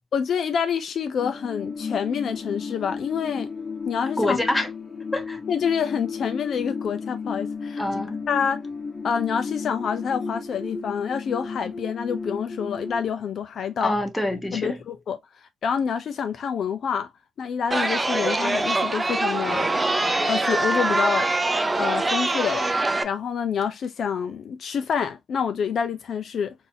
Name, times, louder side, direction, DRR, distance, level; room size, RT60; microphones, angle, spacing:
voice 1, 0.1-3.5 3.9-4.4 5.5-7.8 8.3-8.6 9.0-13.9 14.5-15.2 15.6-17.1 17.4-19.7 20.3-21.3 21.8-22.7 23.0-26.5, left 7 dB, 60° left, 0.5 m, -27 dB
sound 1, 1.2-13.1, left 5 dB, 30° left, 1.3 m, -33 dB
voice 2, 4.2-4.7 5.1-5.4 7.8-8.2 13.8-14.8, left 1 dB, 10° left, 0.8 m, -26 dB
Chatter, 17.7-23.0, right 2 dB, 20° right, 0.5 m, -23 dB
3.9 x 2.6 x 2.6 m
cardioid pair, 90°, 0 cm